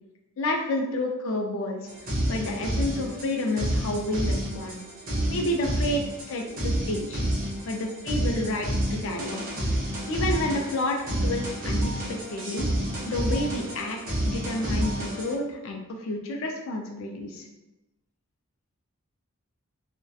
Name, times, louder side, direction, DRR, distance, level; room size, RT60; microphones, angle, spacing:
voice 1, 0.4-1.9 2.3-4.8 5.3-6.0 6.3-7.2 7.6-9.4 10.1-12.7 13.1-17.5, left 1 dB, 65° left, 1 dB, 0.4 m, -30 dB
sound 1, 1.9-15.3, right 1 dB, 40° right, 0.6 m, -29 dB
2.6 x 2.1 x 2.3 m, 0.98 s
head